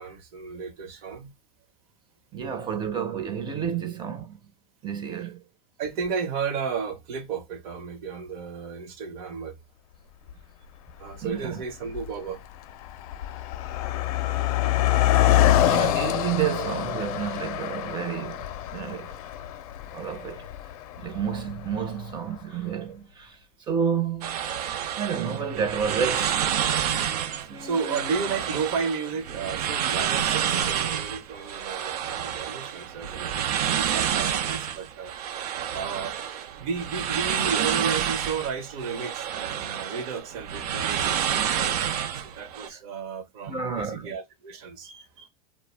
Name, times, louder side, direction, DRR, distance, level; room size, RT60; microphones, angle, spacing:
voice 1, 0.0-1.3 5.8-9.6 11.0-12.4 27.4-35.1 35.7-36.1 36.6-45.3, right 5 dB, 65° right, 0.9 m, -33 dB
voice 2, 2.3-4.4 4.8-5.4 11.2-11.6 14.8-18.5 18.7-19.2 19.9-20.5 21.0-24.4 25.0-26.6 27.5-28.1 42.7-42.8 43.5-44.1, right 7 dB, 25° right, 0.5 m, -30 dB
Car passing by, 10.3-10.4 11.2-11.4 11.7-22.1, left 13 dB, 70° left, 0.4 m, -26 dB
sound 1, 24.2-42.7, right 9 dB, 85° right, 0.5 m, -29 dB
2.3 x 2.1 x 3.2 m
supercardioid pair, 120°, 19 cm